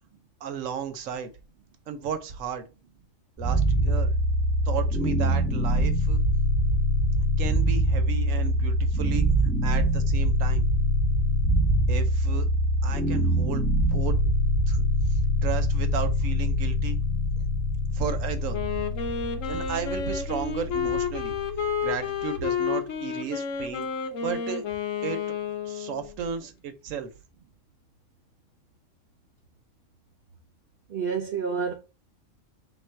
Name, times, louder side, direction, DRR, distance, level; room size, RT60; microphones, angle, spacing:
voice 1, 0.4-1.3 1.9-2.7 3.4-4.1 4.6-6.2 7.4-9.3 9.6-10.6 11.9-12.5 12.8-14.1 14.7-14.8 15.1-17.0 17.9-18.6 19.4-23.9 24.2-24.7 25.0-25.2 25.6-27.1, right 7 dB, 85° right, 1.1 m, -34 dB
sound 1, 3.4-22.4, equal, 10° right, 1.1 m, -24 dB
Wind instrument woodwind instrument, 18.5-26.1, left 7 dB, 80° left, 1.1 m, -30 dB
voice 2, 30.9-31.8, right 5 dB, 60° right, 0.6 m, -29 dB
3.7 x 2.5 x 4.3 m
omnidirectional pair, 1.3 m